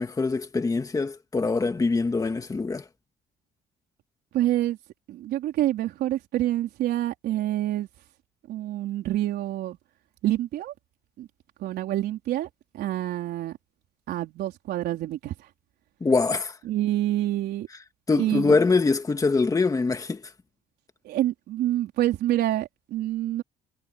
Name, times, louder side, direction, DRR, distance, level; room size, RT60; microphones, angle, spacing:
voice 1, 0.0-2.9 16.0-16.6 18.1-20.3, left 4 dB, 20° left, 2.1 m, -24 dB
voice 2, 4.3-4.8 5.1-7.9 8.5-9.8 10.2-10.7 11.2-11.3 11.6-12.5 12.7-13.6 14.1-15.3 16.7-17.7 18.1-18.5 21.0-23.4, right 14 dB, 75° right, 4.4 m, -27 dB
cardioid pair, 110°, 17 cm